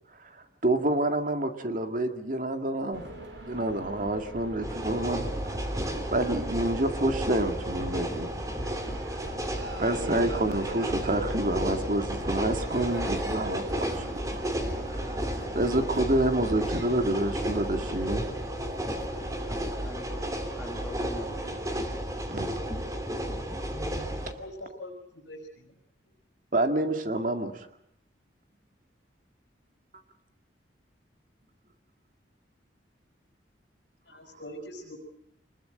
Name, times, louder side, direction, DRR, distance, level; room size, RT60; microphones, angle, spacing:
voice 1, 0.2-3.1 3.5-5.3 6.1-8.3 9.8-14.0 14.3-14.4 14.9-15.2 15.5-18.3 22.3-22.5 23.7-24.1 26.5-27.7, right 1 dB, 45° right, 7 dB, 2.0 m, -28 dB
sound 1, 2.9-21.9, right 1 dB, 75° right, 5.5 m, -41 dB
sound 2, 4.6-24.3, right 1 dB, 20° right, 2.6 m, -33 dB
voice 2, 19.3-21.3, equal, 5° left, 2 dB, 1.8 m, -44 dB
voice 3, 24.2-25.7 34.1-34.9, left 1 dB, 80° left, 0 dB, 5.1 m, -43 dB
25.5 x 21.0 x 7.9 m, 0.73 s
head